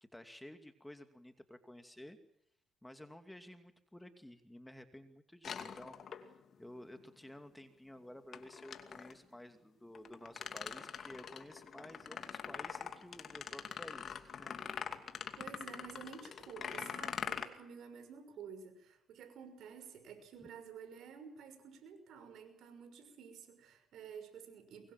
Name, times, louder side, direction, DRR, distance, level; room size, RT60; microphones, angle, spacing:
voice 1, 0.0-2.2 2.8-14.6 20.4-20.5, left 1 dB, 5° left, 7 dB, 2.6 m, -53 dB
sound 1, 5.4-6.5 8.3-9.2 9.9-17.4, left 7 dB, 55° left, 2.5 m, -44 dB
voice 2, 15.4-24.9, right 6 dB, 75° right, 8 dB, 5.9 m, -51 dB
24.0 x 22.0 x 7.5 m, 0.78 s
cardioid pair, 90°, 0 cm